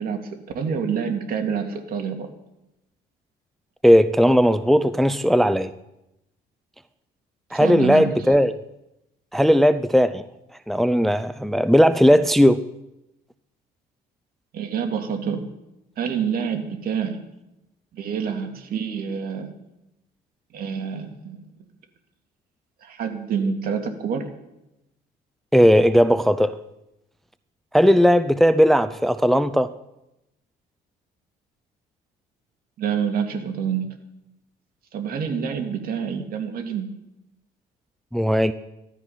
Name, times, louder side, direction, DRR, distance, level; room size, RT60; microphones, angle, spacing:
voice 1, 0.0-2.3 7.5-8.2 14.5-15.5 16.0-17.2 17.9-19.6 20.5-21.4 22.8-24.3 32.8-33.9 34.9-36.9, right 7 dB, 60° right, 4 dB, 2.3 m, -27 dB
voice 2, 3.8-5.7 7.5-8.5 9.3-10.2 10.7-12.6 25.5-26.6 27.7-29.7 38.1-38.5, equal, ahead, 12 dB, 0.5 m, -17 dB
15.5 x 12.5 x 5.7 m, 0.90 s
cardioid pair, 110°, 17 cm